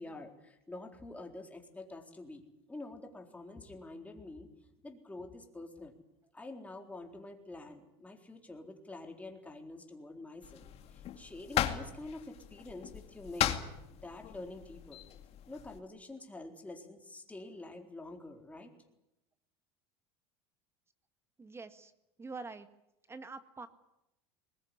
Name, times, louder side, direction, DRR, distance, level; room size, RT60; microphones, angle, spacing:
voice 1, 0.0-2.4 2.7-4.5 4.8-5.9 6.3-13.6 14.0-15.0 15.5-18.7, left 2 dB, 10° left, 3 dB, 4.1 m, -47 dB
sound 1, 10.4-15.8, left 11 dB, 50° left, 2.3 m, -37 dB
voice 2, 21.4-21.9 22.2-22.7 23.1-23.7, right 4 dB, 20° right, 10 dB, 1.7 m, -45 dB
21.0 x 20.5 x 9.8 m, 0.88 s
supercardioid pair, 110°, 14 cm